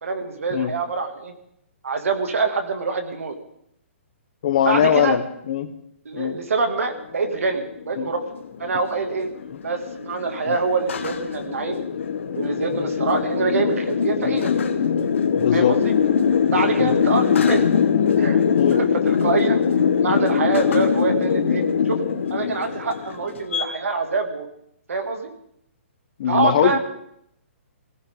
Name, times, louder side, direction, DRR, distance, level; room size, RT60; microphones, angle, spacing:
voice 1, 0.0-1.3 1.8-3.3 4.7-5.2 6.0-8.2 8.6-9.3 9.6-11.8 12.3-14.5 15.5-15.9 16.5-17.7 18.2-18.4 18.8-19.7 20.0-22.0 22.3-24.5 24.9-25.3 26.3-26.8, right 4 dB, 90° right, 6 dB, 2.6 m, -25 dB
voice 2, 4.4-5.7 6.1-6.4 8.0-8.1 10.5-10.6 12.7-12.9 14.2-14.4 15.4-15.8 16.8-16.9 18.5-18.8 26.2-26.8, left 9 dB, 35° left, 10 dB, 1.1 m, -21 dB
sound 1, 7.3-23.7, left 7 dB, 65° left, 1.6 m, -22 dB
22.0 x 16.5 x 3.9 m, 0.72 s
hypercardioid pair, 175°, 7 cm